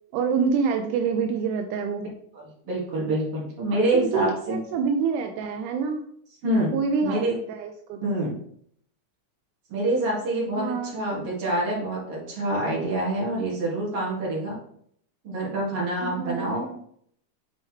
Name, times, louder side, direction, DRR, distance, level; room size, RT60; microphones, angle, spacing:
voice 1, 0.1-2.0 3.7-6.0 6.7-8.2 10.5-11.0 16.0-16.8, right 6 dB, 85° right, 5 dB, 2.1 m, -27 dB
voice 2, 2.6-4.6 6.4-6.7 7.0-7.3 8.0-8.4 9.7-14.5 15.2-16.7, right 1 dB, 50° right, -5 dB, 2.9 m, -26 dB
7.5 x 4.2 x 3.2 m, 0.66 s
omnidirectional pair, 3.5 m